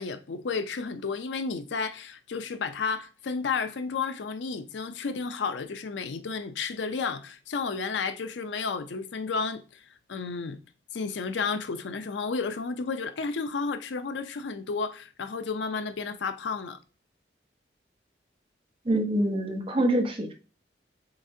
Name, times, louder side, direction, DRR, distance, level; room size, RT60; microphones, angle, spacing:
voice 1, 0.0-9.8 10.1-10.6 10.9-16.8, left 5 dB, 85° left, 0.5 m, -32 dB
voice 2, 18.9-20.3, right 1 dB, 30° right, 0.8 m, -25 dB
7.0 x 2.5 x 2.6 m
head